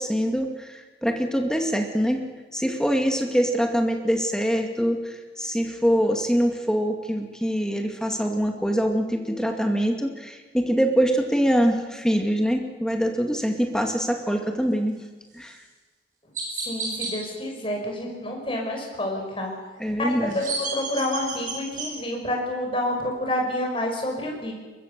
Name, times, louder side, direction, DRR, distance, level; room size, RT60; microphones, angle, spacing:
voice 1, 0.0-2.2 2.5-15.0 15.3-15.6 19.8-20.4, equal, 5° left, 3 dB, 2.3 m, -24 dB
Chirp tweet, 15.4-15.6 16.3-17.1 20.1-21.9, right 4 dB, 45° right, 7.7 m, -31 dB
voice 2, 16.7-19.5 20.0-24.5, left 1 dB, 30° left, 0 dB, 5.7 m, -28 dB
23.0 x 22.0 x 6.9 m, 1.4 s
head